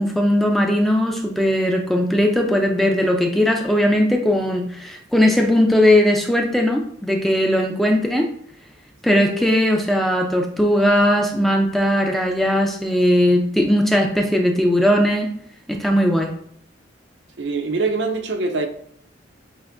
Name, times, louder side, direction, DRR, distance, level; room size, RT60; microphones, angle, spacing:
voice 1, 0.0-8.3 9.0-15.3 15.7-16.3, left 1 dB, ahead, 1 dB, 0.4 m, -18 dB
voice 2, 17.4-18.7, right 3 dB, 65° right, 5 dB, 0.6 m, -23 dB
7.1 x 2.6 x 2.5 m, 0.68 s
head